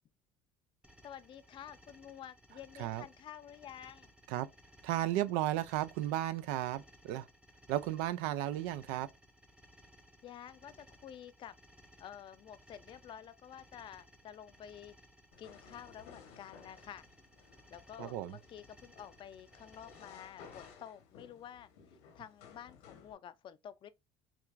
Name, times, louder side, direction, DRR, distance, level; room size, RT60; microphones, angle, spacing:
sound 1, 0.8-20.7, equal, 10° right, 0.8 m, -61 dB
voice 1, 1.0-4.1 10.2-11.6 12.0-14.9 15.4-17.1 17.7-21.7 22.1-23.9, left 9 dB, 45° left, 0.4 m, -50 dB
voice 2, 4.8-7.3 7.7-9.1 18.0-18.4, right 14 dB, 90° right, 0.4 m, -34 dB
sound 2, 15.3-23.1, left 6 dB, 85° left, 1.2 m, -57 dB
5.9 x 2.4 x 2.4 m
cardioid pair, 105°, 12 cm